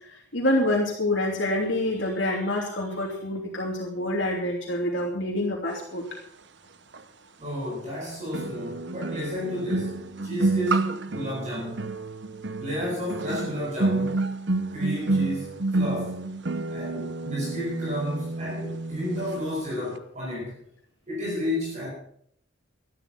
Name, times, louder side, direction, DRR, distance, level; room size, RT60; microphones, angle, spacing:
voice 1, 0.3-6.0, left 1 dB, 65° left, -2 dB, 3.0 m, -26 dB
sound 1, 6.9-7.0 8.3-19.4 19.7-20.0, right 2 dB, 60° right, 0.9 m, -29 dB
voice 2, 7.4-12.1 12.6-14.2 14.7-16.2 16.7-20.6 21.1-21.9, left 1 dB, 35° right, -4 dB, 5.2 m, -32 dB
13.0 x 12.0 x 5.9 m, 0.66 s
head